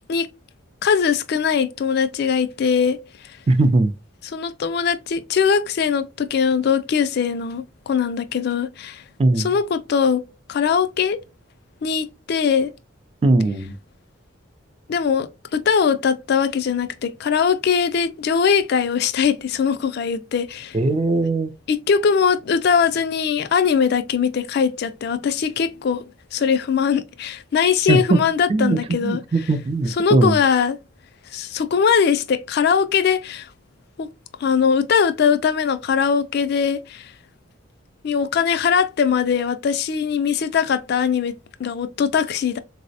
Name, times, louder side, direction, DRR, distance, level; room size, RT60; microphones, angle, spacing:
voice 1, 0.8-3.0 4.2-9.0 9.4-10.2 10.5-11.2 11.8-12.7 14.9-20.8 21.7-26.0 26.3-29.2 30.0-30.8 31.3-33.5 34.0-34.1 34.4-37.1 38.0-42.6, left 6 dB, 55° left, 0.3 m, -21 dB
voice 2, 3.5-3.9 9.2-9.5 13.2-13.7 20.7-21.5 27.9-28.2 28.5-30.4, right 2 dB, 30° right, 0.3 m, -19 dB
4.0 x 2.0 x 2.6 m
head